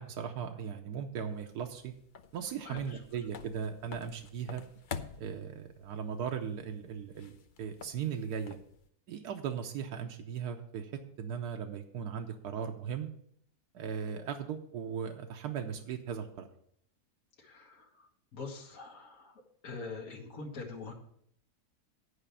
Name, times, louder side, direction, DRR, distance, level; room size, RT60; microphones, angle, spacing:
voice 1, 0.0-1.9 2.3-4.6 5.2-8.6 9.1-10.9 11.2-13.1 13.7-16.5, right 7 dB, 85° right, 3 dB, 1.3 m, -38 dB
sound 1, 1.2-8.9, left 6 dB, 85° left, 0.4 m, -48 dB
voice 2, 2.6-3.0 17.4-20.9, left 4 dB, 60° left, -2 dB, 1.9 m, -44 dB
10.0 x 5.0 x 6.9 m, 0.67 s
omnidirectional pair, 1.6 m